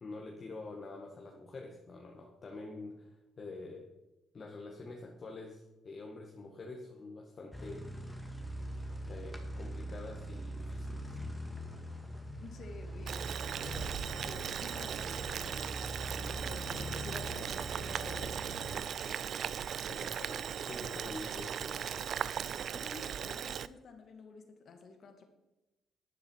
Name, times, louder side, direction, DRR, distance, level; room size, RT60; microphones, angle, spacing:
voice 1, 0.0-3.9 4.3-8.4 8.7-11.2 19.9-22.2, left 3 dB, 45° left, 0 dB, 1.7 m, -47 dB
sound 1, 7.5-18.6, equal, ahead, 1.8 m, -42 dB
voice 2, 12.4-15.8 16.4-19.3 22.7-25.3, left 4 dB, 60° left, 6 dB, 1.8 m, -51 dB
Boiling, 13.1-23.7, right 8 dB, 60° right, 0.4 m, -38 dB
12.0 x 9.4 x 4.7 m, 1.0 s
cardioid pair, 90°, 0 cm